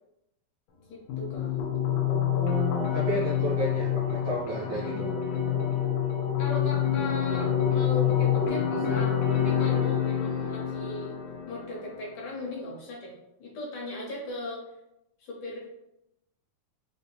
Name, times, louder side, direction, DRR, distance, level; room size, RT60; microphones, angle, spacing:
voice 1, 0.9-1.6 6.4-11.1 11.5-14.6 15.2-15.7, left 2 dB, 70° left, -3 dB, 1.9 m, -38 dB
sound 1, 1.1-12.1, left 9 dB, 85° left, 2.6 m, -27 dB
voice 2, 1.9-5.1, right 1 dB, 80° right, -6 dB, 1.3 m, -33 dB
6.7 x 2.7 x 2.2 m, 0.85 s
omnidirectional pair, 4.1 m